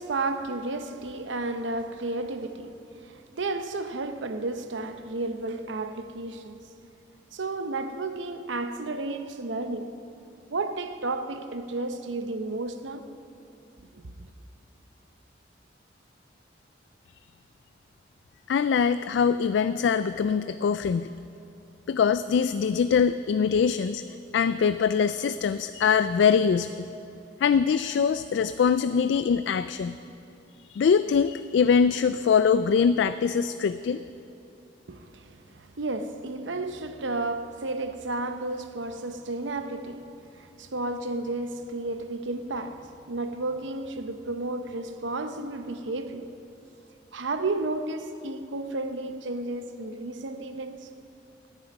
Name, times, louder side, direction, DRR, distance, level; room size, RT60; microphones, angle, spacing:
voice 1, 0.0-6.6 7.3-10.0 10.5-13.0 13.9-14.3 34.9-46.3 47.1-50.9, right 2 dB, 85° right, 0.8 m, -32 dB
voice 2, 18.5-21.1 21.9-24.1 24.3-26.9 27.4-30.0 30.7-34.0, left 6 dB, 70° left, 0.3 m, -23 dB
17.5 x 9.7 x 5.3 m
head